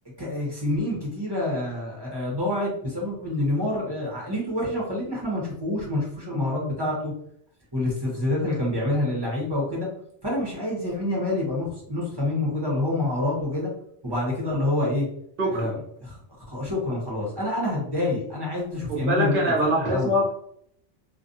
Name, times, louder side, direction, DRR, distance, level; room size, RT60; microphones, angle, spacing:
voice 1, 0.2-7.1 7.7-9.9 10.2-13.7 14.0-15.1 15.5-16.2 16.5-20.1, left 1 dB, 25° right, -4 dB, 0.9 m, -27 dB
voice 2, 15.4-15.7 18.9-20.3, right 1 dB, 50° right, -2 dB, 0.9 m, -23 dB
2.4 x 2.2 x 2.6 m, 0.68 s
omnidirectional pair, 1.2 m